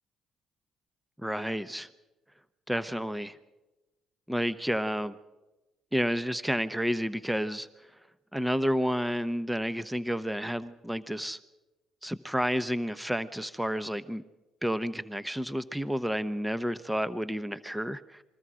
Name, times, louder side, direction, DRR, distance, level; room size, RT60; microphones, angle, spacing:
voice 1, 1.2-1.9 2.7-3.3 4.3-5.2 5.9-7.7 8.3-11.4 12.0-14.2 14.6-18.2, equal, 5° right, 15 dB, 0.9 m, -30 dB
28.0 x 22.0 x 5.0 m, 1.1 s
hypercardioid pair, 55°, 0 cm